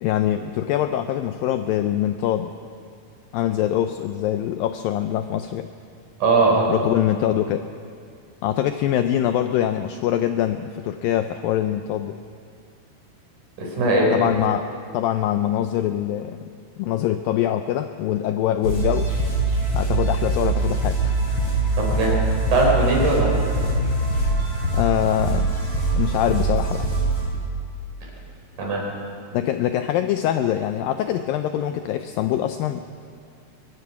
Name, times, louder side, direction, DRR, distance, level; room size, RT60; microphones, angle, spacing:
voice 1, 0.0-2.5 3.3-5.7 6.7-7.7 8.4-12.2 14.1-14.6 14.9-16.5 16.8-19.1 19.8-21.2 24.7-25.6 25.9-26.9 29.3-32.8, left 11 dB, 85° left, 9 dB, 2.0 m, -23 dB
voice 2, 6.2-6.7 13.6-14.1 21.8-22.2 22.5-23.3 28.6-28.8, right 2 dB, 50° right, -2 dB, 5.8 m, -19 dB
sound 1, 18.6-27.2, right 2 dB, 30° left, 5.9 m, -23 dB
23.0 x 21.5 x 5.9 m, 2.3 s
omnidirectional pair, 4.7 m